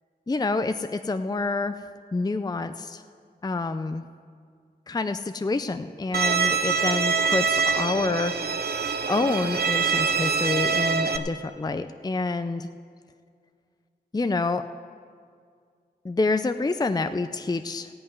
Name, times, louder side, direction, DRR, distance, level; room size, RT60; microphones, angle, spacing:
voice 1, 0.3-1.8 2.1-3.0 3.4-4.0 4.9-8.3 8.6-8.8 9.1-12.7 14.1-14.6 16.0-17.9, left 3 dB, 25° left, 9 dB, 0.5 m, -27 dB
Bowed string instrument, 6.1-11.2, right 5 dB, 70° right, 0.7 m, -24 dB
15.0 x 5.5 x 9.3 m, 2.1 s
wide cardioid pair, 50°, 17 cm